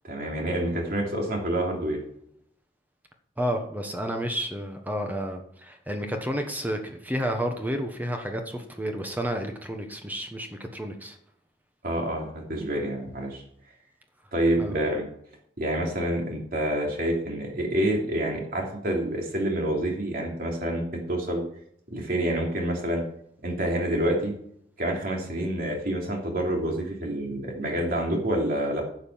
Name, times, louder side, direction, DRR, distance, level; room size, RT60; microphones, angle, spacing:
voice 1, 0.0-2.0 11.8-13.4 14.3-15.1 15.6-21.4 21.9-23.0 23.4-24.3 24.8-28.8, right 1 dB, 55° right, 0 dB, 3.1 m, -27 dB
voice 2, 3.4-11.2 14.6-14.7, equal, 10° right, 4 dB, 1.1 m, -31 dB
11.0 x 7.3 x 5.7 m, 0.69 s
head